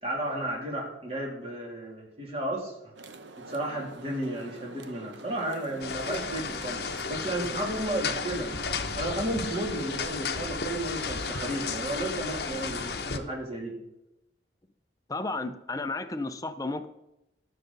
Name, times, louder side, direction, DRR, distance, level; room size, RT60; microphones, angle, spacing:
voice 1, 0.0-2.9 3.4-6.8 7.1-8.6 9.0-13.8, right 1 dB, 30° right, -1 dB, 2.9 m, -33 dB
sound 1, 3.0-12.9, right 3 dB, 85° right, 0.9 m, -45 dB
sound 2, 5.8-13.2, left 5 dB, 60° left, 0.9 m, -33 dB
voice 2, 15.1-16.9, left 2 dB, 20° left, 9 dB, 0.6 m, -33 dB
19.5 x 6.5 x 4.0 m, 0.89 s
head